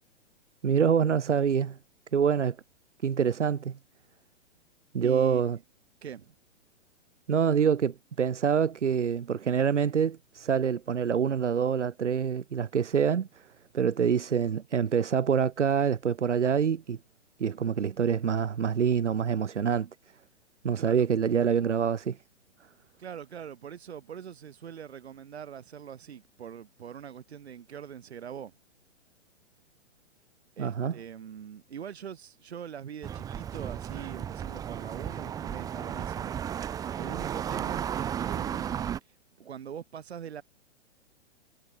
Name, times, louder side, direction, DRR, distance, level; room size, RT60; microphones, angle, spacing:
voice 1, 0.6-1.8 2.1-2.6 3.0-3.8 4.9-5.6 7.3-13.3 13.7-17.0 17.4-19.9 20.6-22.2 30.6-31.0, right 7 dB, 80° right, 0.9 m, -26 dB
voice 2, 5.0-5.4 6.0-6.3 20.8-21.1 23.0-28.5 30.6-36.4 36.7-38.8 39.4-40.4, right 8 dB, 65° right, 6.0 m, -43 dB
sound 1, 33.0-39.0, right 9 dB, 10° right, 0.6 m, -34 dB
figure-of-eight pair, 115°, 35 cm